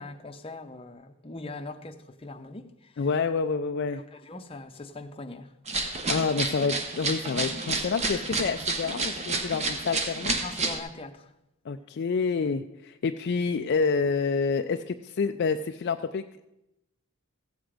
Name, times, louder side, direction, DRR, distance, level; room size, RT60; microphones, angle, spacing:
voice 1, 0.0-3.1 3.9-5.5 10.4-11.3, left 2 dB, 25° left, 0.7 m, -41 dB
voice 2, 3.0-4.0 6.1-10.4 11.7-16.4, left 5 dB, 50° left, 0.4 m, -28 dB
sound 1, 5.7-10.8, right 3 dB, 30° right, 1.0 m, -30 dB
15.0 x 7.8 x 4.9 m
head